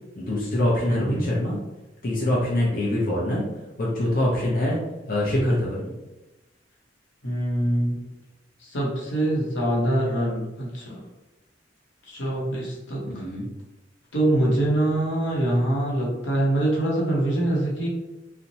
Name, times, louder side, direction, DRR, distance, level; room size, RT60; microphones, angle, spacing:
voice 1, 0.2-1.6 2.0-3.4 3.8-4.8 5.1-5.9 13.1-13.5, left 1 dB, 50° left, -5 dB, 0.6 m, -24 dB
voice 2, 0.8-1.3 7.2-8.1 8.6-11.0 12.1-13.2 14.1-17.9, right 1 dB, 85° left, -4 dB, 0.8 m, -24 dB
2.9 x 2.1 x 2.6 m, 1.0 s
head